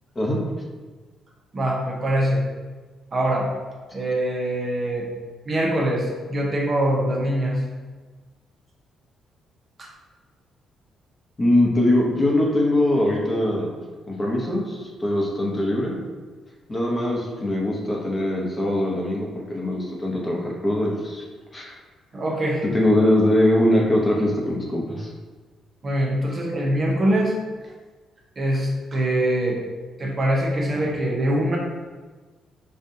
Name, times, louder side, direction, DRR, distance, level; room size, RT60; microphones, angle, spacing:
voice 1, 1.5-2.4 3.1-3.5 3.9-5.1 5.5-7.6 9.8-9.9 22.1-22.6 25.8-27.3 28.4-29.6 30.0-31.6, right 1 dB, 40° right, -2 dB, 0.7 m, -23 dB
voice 2, 11.4-13.7 14.1-16.0 16.7-21.2 21.5-21.7 22.6-25.1, left 1 dB, 25° left, -2 dB, 0.8 m, -22 dB
5.2 x 2.3 x 2.7 m, 1.3 s
cardioid pair, 90°, 0 cm